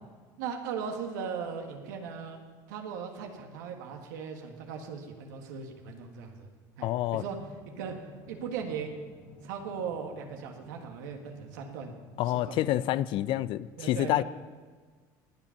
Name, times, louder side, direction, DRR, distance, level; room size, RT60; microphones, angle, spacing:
voice 1, 0.4-2.4 2.7-6.5 6.8-7.4 7.7-8.0 8.3-9.0 9.4-12.0 12.5-12.6 13.8-14.2, right 6 dB, 90° right, 3 dB, 1.6 m, -38 dB
voice 2, 6.8-7.2 12.2-14.2, left 14 dB, 60° left, 18 dB, 0.5 m, -28 dB
sound 1, 7.2-13.1, left 2 dB, 45° left, 2.0 m, -54 dB
19.0 x 7.5 x 5.8 m, 1.5 s
supercardioid pair, 95°, 10 cm